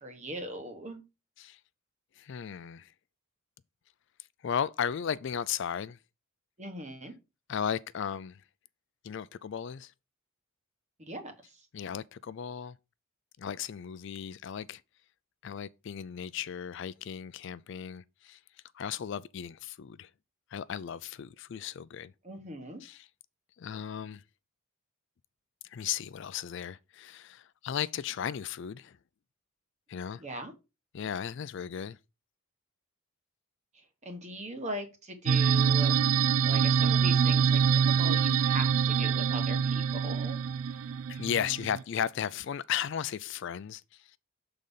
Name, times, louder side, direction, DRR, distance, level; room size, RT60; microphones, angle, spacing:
voice 1, 0.0-1.0 6.6-7.2 11.0-11.7 22.2-22.8 30.1-30.5 33.7-36.0 36.4-40.9, right 1 dB, 35° right, 1.3 m, -40 dB
voice 2, 2.2-2.9 4.4-6.0 7.5-8.4 9.0-9.9 11.7-12.8 13.4-14.8 15.4-18.4 18.7-20.1 20.5-22.1 22.8-23.1 23.6-24.2 25.6-29.0 29.9-30.2 30.9-32.0 41.1-44.1, left 8 dB, 60° left, 0.3 m, -35 dB
sound 1, 35.3-41.8, right 7 dB, 75° right, 0.3 m, -25 dB
6.6 x 3.9 x 5.4 m
head